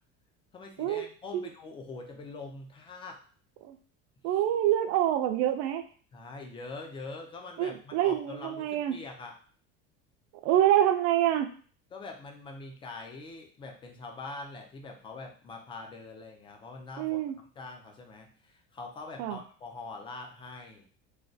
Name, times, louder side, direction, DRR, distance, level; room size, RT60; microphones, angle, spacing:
voice 1, 0.5-3.2 6.1-9.3 11.9-20.9, left 3 dB, 20° left, 3 dB, 0.3 m, -44 dB
voice 2, 4.2-5.8 7.6-8.9 10.4-11.5 17.0-17.4 19.2-19.4, right 12 dB, 60° right, 8 dB, 0.4 m, -26 dB
3.2 x 2.2 x 2.6 m, 0.42 s
cardioid pair, 150°, 30 cm